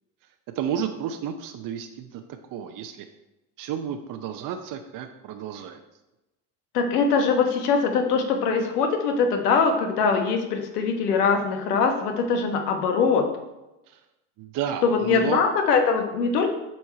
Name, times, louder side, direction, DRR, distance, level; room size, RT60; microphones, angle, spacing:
voice 1, 0.5-2.2 2.5-3.1 3.6-5.8 13.9-14.0 14.4-15.4, right 8 dB, 45° right, 6 dB, 0.7 m, -31 dB
voice 2, 6.7-13.3 14.8-16.5, left 5 dB, 90° left, 5 dB, 1.2 m, -22 dB
7.9 x 4.4 x 4.3 m, 0.99 s
hypercardioid pair, 85°, 45 cm